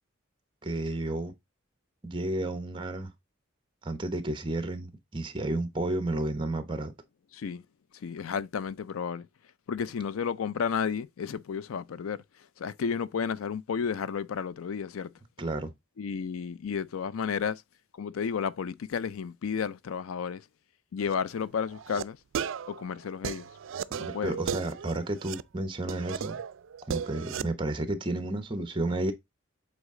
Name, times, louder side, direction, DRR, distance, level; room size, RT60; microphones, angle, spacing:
voice 1, 0.6-1.3 2.0-3.1 3.8-6.9 15.4-15.7 23.9-26.4 26.9-29.1, right 2 dB, 25° right, 0.9 m, -32 dB
voice 2, 7.3-7.6 7.9-9.3 9.7-12.2 12.6-15.1 16.0-17.6 17.9-20.4 20.9-22.2 22.7-23.5 24.0-24.4, left 6 dB, 80° left, 0.4 m, -32 dB
sound 1, 21.0-21.2 21.7-22.0 22.3-25.4 25.9-27.5, right 7 dB, 65° right, 0.4 m, -35 dB
8.1 x 4.0 x 3.7 m
head